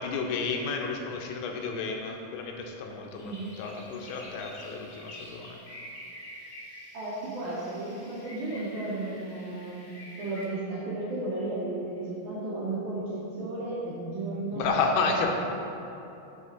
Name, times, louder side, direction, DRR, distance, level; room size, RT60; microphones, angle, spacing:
voice 1, 0.0-5.6 14.5-15.3, left 4 dB, 80° left, 2 dB, 2.5 m, -31 dB
sound 1, 3.1-10.4, left 1 dB, 65° left, 1.2 m, -47 dB
voice 2, 6.9-9.9 10.2-14.7 15.1-15.3, right 2 dB, 70° right, -8 dB, 1.9 m, -34 dB
7.1 x 4.5 x 5.6 m, 2.9 s
omnidirectional pair, 4.6 m